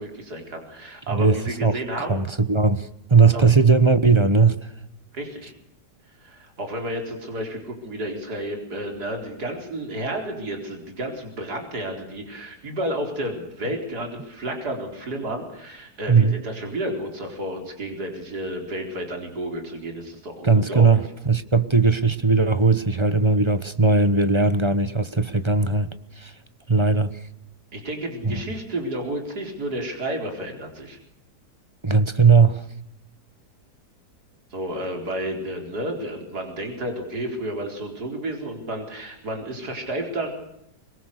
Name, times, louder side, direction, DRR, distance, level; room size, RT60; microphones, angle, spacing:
voice 1, 0.0-2.3 3.3-3.4 5.1-5.5 6.2-21.0 27.7-31.0 34.5-40.3, right 1 dB, 65° right, 4.7 m, -31 dB
voice 2, 1.1-4.6 16.1-16.4 20.4-26.3 26.7-27.2 28.2-28.4 31.8-32.6, right 4 dB, 20° right, 1.0 m, -19 dB
25.5 x 22.0 x 6.7 m
omnidirectional pair, 1.8 m